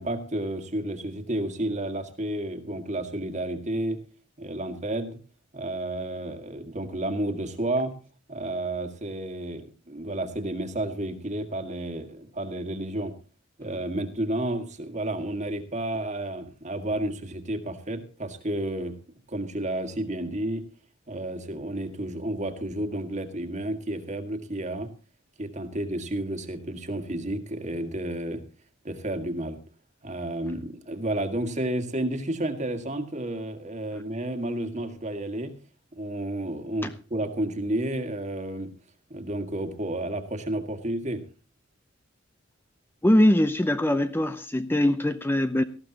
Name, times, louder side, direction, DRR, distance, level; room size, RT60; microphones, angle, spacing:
voice 1, 0.0-4.0 4.4-5.2 5.5-7.9 8.3-13.1 13.6-19.0 19.3-20.6 21.1-24.9 25.4-28.4 28.8-29.6 30.0-35.5 35.9-38.7 39.1-41.2, right 1 dB, 35° right, 1.8 m, -31 dB
voice 2, 43.0-45.6, left 1 dB, 10° left, 0.6 m, -22 dB
18.5 x 14.5 x 2.9 m
head